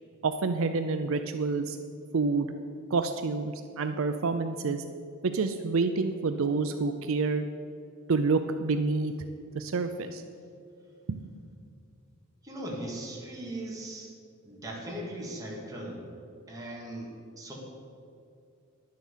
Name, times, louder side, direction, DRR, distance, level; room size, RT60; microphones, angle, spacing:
voice 1, 0.2-1.8 2.1-2.5 2.9-4.8 5.3-7.5 8.1-9.1 9.5-10.2 11.1-11.2, right 4 dB, 70° right, 8 dB, 0.5 m, -28 dB
voice 2, 12.4-14.1 14.4-16.1 16.5-17.5, right 1 dB, 15° right, -3 dB, 2.4 m, -39 dB
11.0 x 7.6 x 7.3 m, 2.5 s
head